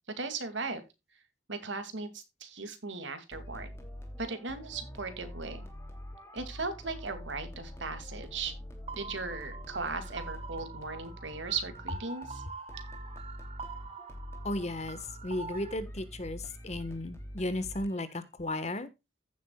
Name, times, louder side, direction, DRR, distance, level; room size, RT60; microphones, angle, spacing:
voice 1, 0.2-0.8 1.5-3.7 4.2-5.7 6.3-8.5 9.0-12.4, right 4 dB, 75° right, 9 dB, 2.4 m, -37 dB
sound 1, 3.3-18.2, equal, 15° left, 2.8 m, -45 dB
sound 2, 8.9-15.7, right 4 dB, 30° right, 1.1 m, -45 dB
voice 2, 14.4-18.9, left 1 dB, 35° left, 13 dB, 1.3 m, -35 dB
15.5 x 7.3 x 2.3 m, 0.24 s
head